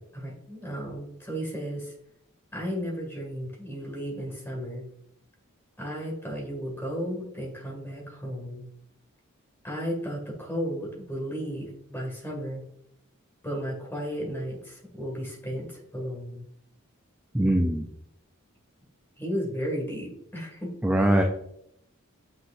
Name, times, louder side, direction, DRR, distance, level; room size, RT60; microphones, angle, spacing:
voice 1, 0.1-1.9 2.5-4.9 5.8-8.6 9.6-12.6 13.4-16.4 19.2-20.7, equal, 10° left, -2 dB, 2.0 m, -34 dB
voice 2, 17.3-17.9 20.8-21.2, right 1 dB, 5° right, 3 dB, 0.4 m, -22 dB
7.5 x 6.2 x 2.6 m, 0.74 s
head